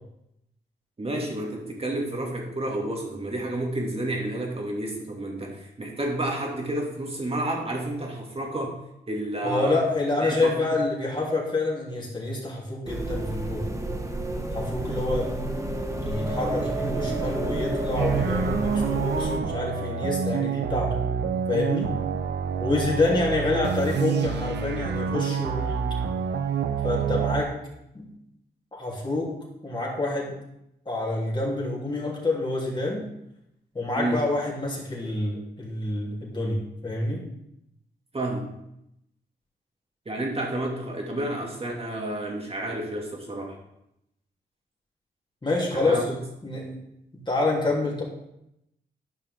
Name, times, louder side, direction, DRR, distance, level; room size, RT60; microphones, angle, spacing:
voice 1, 1.0-8.8 9.1-9.8 10.2-10.5 34.0-34.2 38.1-38.5 40.1-43.6 45.7-46.2, right 1 dB, 35° right, 0 dB, 2.4 m, -30 dB
voice 2, 9.4-13.6 14.5-15.3 16.0-20.9 21.5-21.9 22.6-25.8 26.8-27.5 27.9-28.1 28.7-29.3 29.6-30.3 30.8-33.1 33.7-37.2 45.4-46.0 46.4-46.7 47.1-48.0, left 2 dB, 25° left, -4 dB, 3.2 m, -27 dB
sound 1, 12.9-19.4, right 1 dB, 15° right, 1.3 m, -30 dB
sound 2, 18.0-27.4, right 7 dB, 75° right, 0.6 m, -27 dB
10.5 x 5.6 x 3.6 m, 0.82 s
cardioid pair, 55°, 18 cm